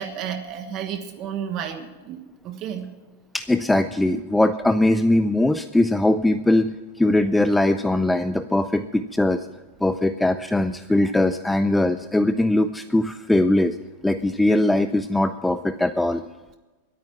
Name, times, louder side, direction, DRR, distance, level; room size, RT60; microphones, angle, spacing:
voice 1, 0.0-2.9 11.0-11.1, right 8 dB, 35° right, 7 dB, 1.3 m, -32 dB
voice 2, 3.3-9.4 9.8-13.7 14.0-16.2, left 1 dB, 5° left, 10 dB, 0.4 m, -21 dB
22.0 x 9.2 x 5.8 m, 1.2 s
supercardioid pair, 160°, 0 cm